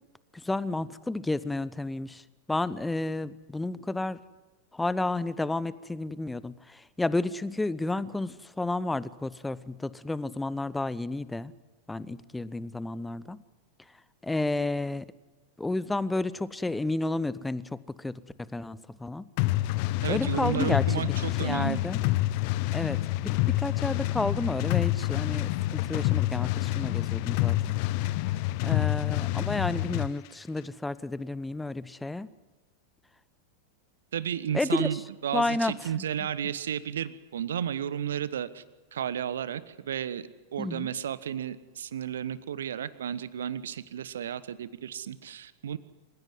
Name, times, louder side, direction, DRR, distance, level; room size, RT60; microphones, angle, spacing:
voice 1, 0.3-2.2 2.5-4.2 4.7-11.5 11.9-13.4 14.2-15.1 15.6-18.2 18.5-19.3 20.1-21.0 21.4-22.0 22.7-27.8 28.6-32.3 34.5-34.9 35.3-36.0 40.6-40.9, left 2 dB, 5° left, 18 dB, 0.9 m, -31 dB
sound 1, 19.4-30.1, left 17 dB, 45° left, 0.7 m, -27 dB
voice 2, 20.0-21.8 34.1-38.6 38.9-45.8, right 9 dB, 65° right, 16 dB, 1.1 m, -33 dB
27.5 x 16.0 x 9.8 m, 1.2 s
figure-of-eight pair, 90°, 0 cm